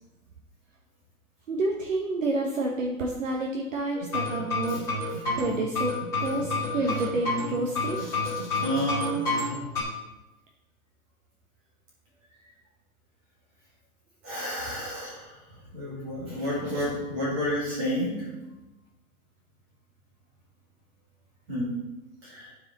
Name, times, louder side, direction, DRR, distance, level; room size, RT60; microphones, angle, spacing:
voice 1, 1.5-8.0, right 2 dB, 55° right, 0 dB, 1.1 m, -29 dB
sound 1, 4.0-9.8, left 3 dB, 5° left, 2.4 m, -29 dB
voice 2, 8.0-9.4 14.2-15.4 15.7-18.3 21.5-21.8 22.2-22.5, equal, 15° right, -4 dB, 1.7 m, -31 dB
12.0 x 4.8 x 4.0 m, 1.0 s
hypercardioid pair, 180°, 45 cm